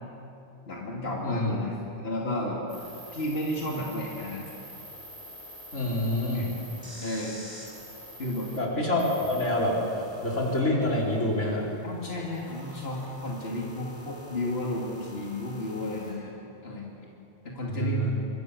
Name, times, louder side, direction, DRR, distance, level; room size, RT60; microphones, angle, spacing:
voice 1, 0.7-1.7 2.0-2.6 3.1-4.5 6.3-6.4 7.0-7.5 8.2-8.5 11.8-16.4 16.6-17.1 17.4-18.1, left 1 dB, 55° left, -3 dB, 3.0 m, -32 dB
sound 1, 2.7-8.6 9.0-16.1, equal, 20° right, 7.0 m, -47 dB
voice 2, 5.7-6.5 8.6-11.7 17.7-18.1, left 1 dB, 85° left, -3 dB, 4.7 m, -27 dB
26.5 x 23.0 x 6.9 m, 2.8 s
omnidirectional pair, 1.2 m